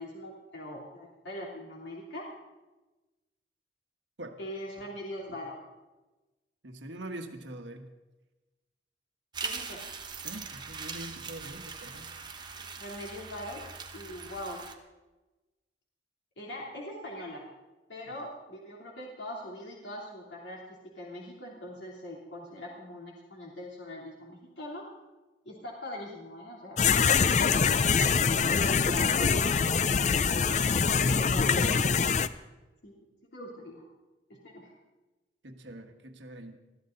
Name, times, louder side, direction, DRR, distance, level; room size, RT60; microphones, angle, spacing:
voice 1, 0.0-2.3 4.4-5.6 9.4-9.8 12.8-13.7 13.9-14.7 16.4-17.5 17.9-20.6 20.9-24.8 25.4-26.9 28.5-30.2 30.8-32.1 32.8-33.0 33.3-33.8 34.3-34.7, left 1 dB, 75° left, -4 dB, 3.1 m, -41 dB
voice 2, 6.6-7.9 10.2-12.1 35.4-36.6, right 1 dB, 80° right, 5 dB, 1.5 m, -43 dB
sound 1, 9.3-14.7, right 5 dB, 25° right, 1.1 m, -41 dB
sound 2, 26.8-32.3, left 5 dB, 40° left, 0.5 m, -24 dB
21.5 x 13.5 x 3.9 m, 1.1 s
head